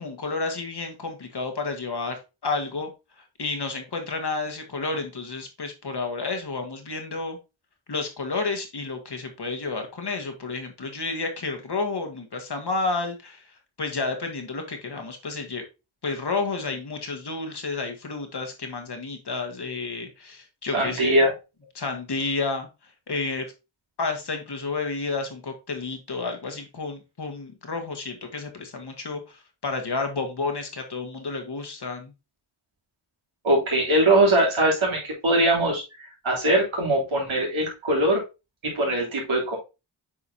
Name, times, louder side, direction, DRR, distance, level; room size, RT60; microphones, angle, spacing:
voice 1, 0.0-2.9 3.4-7.4 7.9-13.4 13.8-15.6 16.0-21.2 21.8-22.7 23.1-23.5 24.0-32.1, left 3 dB, 55° left, 5 dB, 1.7 m, -31 dB
voice 2, 20.7-21.3 33.4-38.2 38.6-39.6, right 1 dB, 75° right, -3 dB, 3.3 m, -22 dB
8.0 x 4.7 x 2.8 m, 0.27 s
cardioid pair, 65°, 48 cm